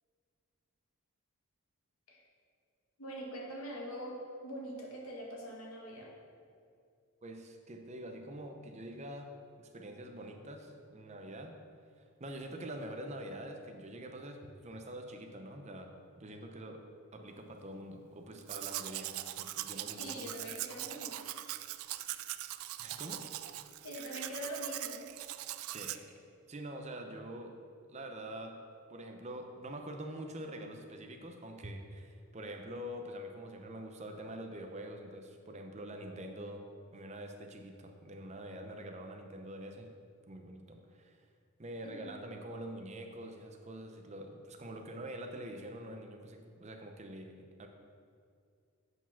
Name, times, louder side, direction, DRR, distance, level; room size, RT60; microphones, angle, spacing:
voice 1, 3.0-6.1 20.0-21.3 23.8-25.1 41.8-42.2, equal, 75° left, -2 dB, 1.7 m, -43 dB
voice 2, 7.2-11.6 12.2-16.8 17.1-20.5 22.8-23.2 25.7-26.2 26.5-27.6 27.9-28.6 28.9-36.7 36.9-39.9 40.3-41.2 41.6-47.7, right 1 dB, 30° right, 4 dB, 0.7 m, -45 dB
Domestic sounds home sounds, 18.4-26.0, right 14 dB, 70° right, 0.3 m, -41 dB
8.0 x 4.8 x 5.7 m, 2.3 s
head